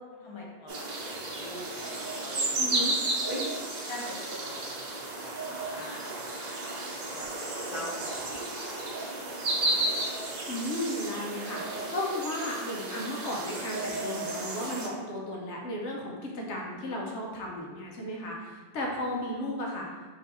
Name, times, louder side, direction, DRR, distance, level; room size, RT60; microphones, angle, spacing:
voice 1, 0.0-2.9 3.3-3.4 3.9-8.3 8.8-8.9, left 1 dB, 30° left, -3 dB, 0.7 m, -43 dB
sound 1, 0.7-14.9, right 2 dB, 45° right, 0.7 m, -33 dB
voice 2, 2.6-2.9 10.5-11.6 11.9-19.9, left 1 dB, 85° left, -1 dB, 1.1 m, -34 dB
3.6 x 2.9 x 4.3 m, 1.4 s
omnidirectional pair, 1.2 m